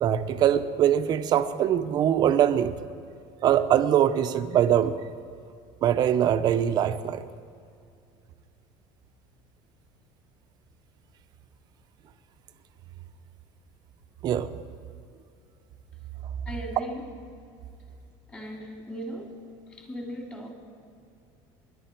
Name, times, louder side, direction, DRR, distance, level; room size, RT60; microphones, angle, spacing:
voice 1, 0.0-2.8 3.4-5.0 5.8-7.2 14.2-14.5, right 10 dB, 40° right, 10 dB, 0.8 m, -22 dB
voice 2, 16.4-17.0 18.3-19.4 19.7-20.5, equal, 15° left, 0 dB, 2.7 m, -37 dB
26.0 x 11.0 x 4.6 m, 2.4 s
cardioid pair, 155°, 11 cm